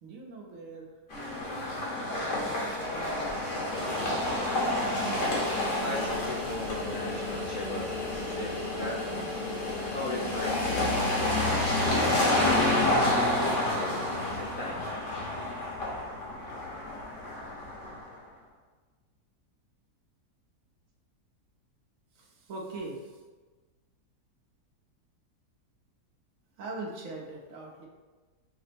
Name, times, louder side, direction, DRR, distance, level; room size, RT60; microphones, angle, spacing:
voice 1, 0.0-4.4 22.1-23.2 26.6-27.9, right 2 dB, 60° right, -2 dB, 1.0 m, -43 dB
sound 1, 1.1-18.1, left 1 dB, 50° left, 1.2 m, -29 dB
voice 2, 5.8-9.7 9.9-12.6 13.0-14.8, left 1 dB, 90° left, -5 dB, 0.4 m, -38 dB
5.1 x 2.1 x 4.2 m, 1.3 s
omnidirectional pair, 1.8 m